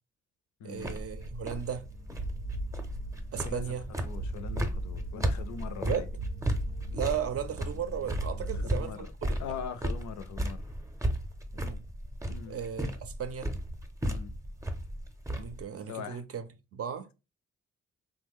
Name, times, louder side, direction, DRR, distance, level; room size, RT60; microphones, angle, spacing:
voice 1, 0.6-1.8 3.3-3.9 5.9-6.1 6.9-9.4 11.5-11.8 12.5-13.5 15.3-17.1, right 8 dB, 55° right, 0.5 m, -36 dB
sound 1, 0.8-15.6, equal, 10° right, 0.6 m, -35 dB
sound 2, 1.2-8.6, right 1 dB, 90° right, 0.7 m, -39 dB
voice 2, 3.4-6.1 8.4-9.1 9.4-10.7 12.3-12.6 14.0-14.3 15.9-16.2, left 7 dB, 75° left, 0.5 m, -41 dB
3.0 x 2.1 x 3.5 m
cardioid pair, 70°, 29 cm